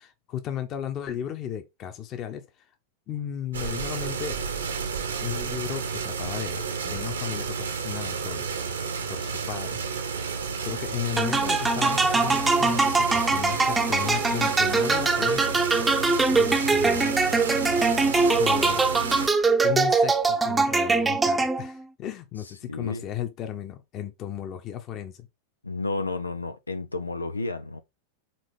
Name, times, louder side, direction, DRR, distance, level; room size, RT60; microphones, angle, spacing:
voice 1, 0.0-2.4 3.1-4.4 5.2-8.5 9.1-9.8 10.6-15.5 16.3-17.2 18.4-18.9 19.6-25.3, left 10 dB, 35° left, 1.2 m, -35 dB
sound 1, 3.5-19.3, right 5 dB, 70° right, 1.4 m, -31 dB
sound 2, 11.2-21.8, right 3 dB, 10° right, 0.9 m, -22 dB
voice 2, 22.6-23.1 25.6-27.8, left 3 dB, 80° left, 0.7 m, -31 dB
6.1 x 4.1 x 5.0 m
figure-of-eight pair, 90°, 0 cm